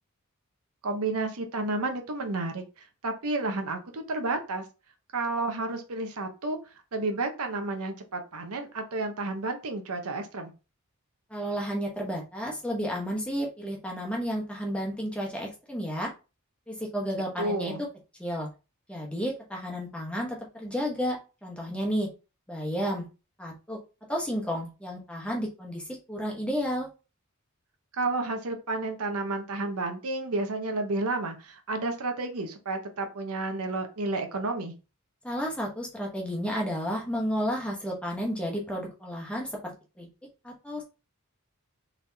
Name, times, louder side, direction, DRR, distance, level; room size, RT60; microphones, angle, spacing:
voice 1, 0.8-2.6 3.0-4.6 5.1-6.6 6.9-10.5 17.4-17.8 28.0-34.7, right 2 dB, 85° right, 5 dB, 0.8 m, -31 dB
voice 2, 11.3-16.1 16.7-17.7 18.2-18.5 18.9-22.1 22.5-23.1 23.4-23.8 24.1-26.9 35.2-40.1 40.4-40.8, equal, 5° left, -2 dB, 1.1 m, -32 dB
4.2 x 3.4 x 2.7 m, 0.30 s
head